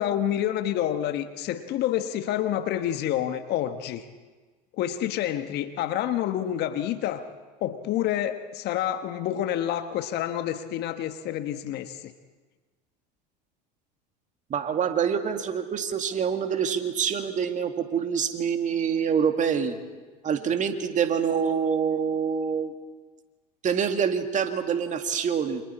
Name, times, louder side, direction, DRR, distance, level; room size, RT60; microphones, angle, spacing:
voice 1, 0.0-4.0 4.8-7.2 7.6-12.1, left 11 dB, 50° left, 9 dB, 1.4 m, -28 dB
voice 2, 14.5-19.8 20.2-22.7 23.6-25.6, right 7 dB, 35° right, 6 dB, 2.1 m, -26 dB
29.0 x 26.5 x 4.4 m, 1.3 s
hypercardioid pair, 80°, 21 cm